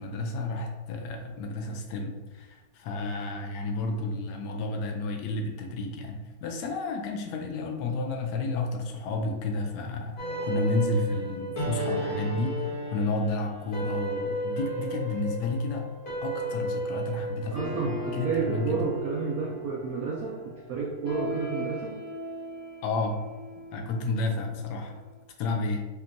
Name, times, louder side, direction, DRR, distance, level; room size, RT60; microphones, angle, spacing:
voice 1, 0.0-15.9 16.2-18.8 22.8-23.2 23.7-25.0 25.4-25.9, left 2 dB, 70° left, 2 dB, 1.0 m, -31 dB
sound 1, 10.2-24.7, right 1 dB, 90° left, 0.4 m, -34 dB
voice 2, 17.4-22.0, right 5 dB, 90° right, -2 dB, 0.7 m, -31 dB
4.3 x 2.7 x 2.5 m, 1.2 s
omnidirectional pair, 2.1 m